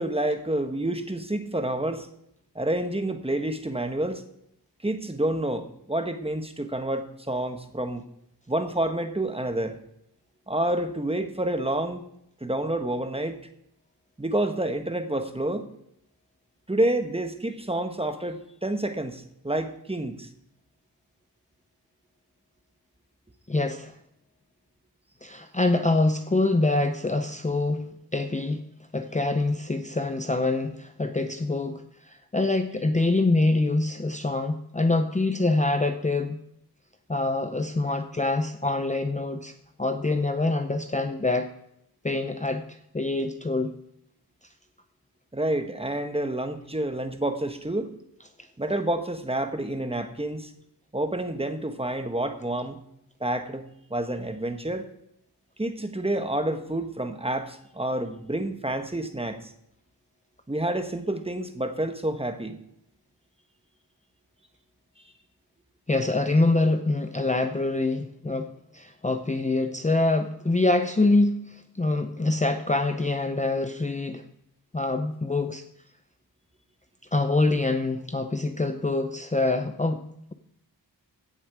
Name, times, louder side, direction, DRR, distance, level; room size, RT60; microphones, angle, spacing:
voice 1, 0.0-2.1 2.5-4.2 4.8-8.0 8.5-9.8 10.5-12.0 12.4-13.4 14.2-15.7 16.7-20.3 45.3-47.9 48.6-50.5 50.9-52.8 53.2-53.6 53.9-54.9 55.6-59.4 60.5-62.6, right 1 dB, 15° right, 7 dB, 1.2 m, -28 dB
voice 2, 23.5-23.9 25.2-27.9 28.1-28.7 28.9-36.4 37.1-39.5 39.8-41.5 42.0-42.6 42.9-43.8 65.9-74.2 74.7-75.6 77.1-80.0, left 2 dB, 20° left, 7 dB, 0.7 m, -25 dB
16.0 x 7.2 x 4.7 m, 0.76 s
wide cardioid pair, 85°, 39 cm